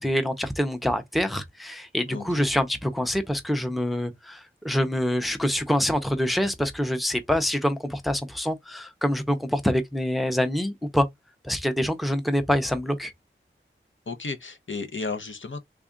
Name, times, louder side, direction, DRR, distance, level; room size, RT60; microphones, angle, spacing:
voice 1, 0.0-11.1 11.4-13.1, equal, ahead, 0.6 m, -26 dB
voice 2, 2.1-2.5 14.1-15.6, left 4 dB, 70° left, 0.7 m, -33 dB
3.5 x 2.3 x 3.7 m
wide cardioid pair, 60°, 21 cm